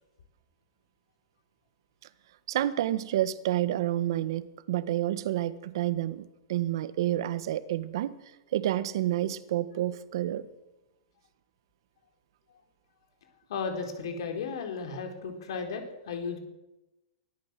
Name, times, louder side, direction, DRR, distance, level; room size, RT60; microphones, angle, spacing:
voice 1, 2.5-8.1 8.5-10.5, right 13 dB, 65° right, 13 dB, 1.5 m, -29 dB
voice 2, 13.5-16.4, left 5 dB, 70° left, 5 dB, 4.4 m, -34 dB
24.0 x 15.0 x 7.6 m, 1.0 s
supercardioid pair, 155°, 3 cm